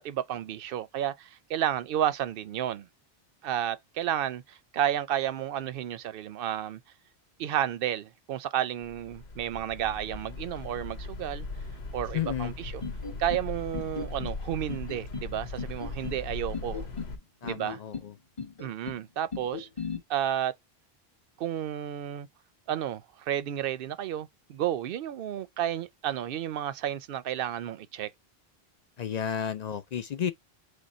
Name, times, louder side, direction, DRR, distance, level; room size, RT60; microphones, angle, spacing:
voice 1, 0.0-2.9 3.4-6.8 7.4-11.5 11.9-12.8 13.2-16.8 17.4-17.8 18.6-19.7 20.1-20.5 21.4-22.3 22.7-28.1, right 11 dB, 65° right, 0.7 m, -31 dB
sound 1, 8.8-17.2, left 3 dB, 85° left, 1.3 m, -39 dB
voice 2, 12.1-12.5 17.4-18.1 29.0-30.3, left 9 dB, 55° left, 0.5 m, -32 dB
sound 2, 12.8-13.5 13.7-14.4 14.7-15.3 15.6-16.2 16.5-17.1 17.5-18.1 18.4-19.0 19.3-20.0, left 5 dB, 30° left, 1.2 m, -37 dB
5.1 x 2.2 x 4.1 m
omnidirectional pair, 1.0 m